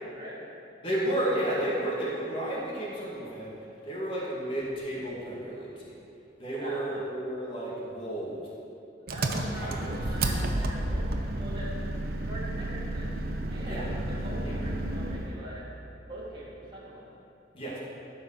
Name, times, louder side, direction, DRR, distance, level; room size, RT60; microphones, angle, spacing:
voice 1, 0.0-0.4 6.5-6.8 9.0-11.7 12.2-13.2 13.5-15.7 16.1-17.1, right 1 dB, 25° right, -7 dB, 2.9 m, -43 dB
voice 2, 0.8-3.6 3.8-6.0 6.4-8.5 9.3-9.9 10.2-10.5 13.6-13.9 14.4-14.6 17.5-17.8, right 1 dB, 30° left, -6 dB, 2.3 m, -32 dB
Engine, 9.1-15.4, right 1 dB, 55° right, 0.9 m, -31 dB
14.5 x 5.5 x 6.6 m, 2.7 s
head